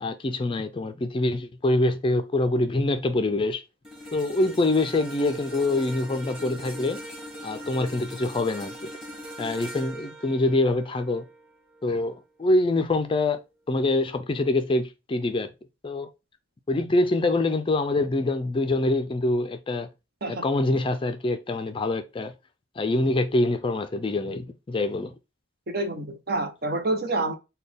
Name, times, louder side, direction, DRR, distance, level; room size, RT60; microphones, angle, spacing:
voice 1, 0.0-3.6 4.1-7.0 7.4-8.9 9.4-11.2 11.8-13.4 13.7-15.5 15.8-16.1 16.7-19.9 20.3-22.3 22.8-25.1, left 2 dB, 25° left, 0.4 m, -25 dB
sound 1, 3.8-12.2 12.6-12.8, equal, ahead, 1.2 m, -41 dB
voice 2, 25.7-27.3, right 2 dB, 55° right, 0.8 m, -27 dB
4.1 x 2.3 x 3.3 m
head